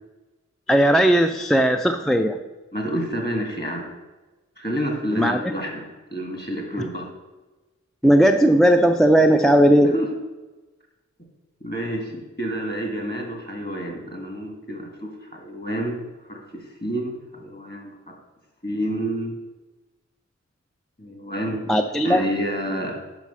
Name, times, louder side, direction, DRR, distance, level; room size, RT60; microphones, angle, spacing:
voice 1, 0.7-2.4 5.1-5.4 8.0-9.9 21.7-22.3, equal, ahead, 6 dB, 0.3 m, -17 dB
voice 2, 2.7-3.9 4.6-5.9 6.1-7.1 9.8-10.1 11.6-16.0 16.3-17.9 18.6-19.3 21.0-21.6 22.0-23.0, equal, 35° left, 1 dB, 1.9 m, -29 dB
6.0 x 5.6 x 5.6 m, 1.2 s
wide cardioid pair, 55°, 30 cm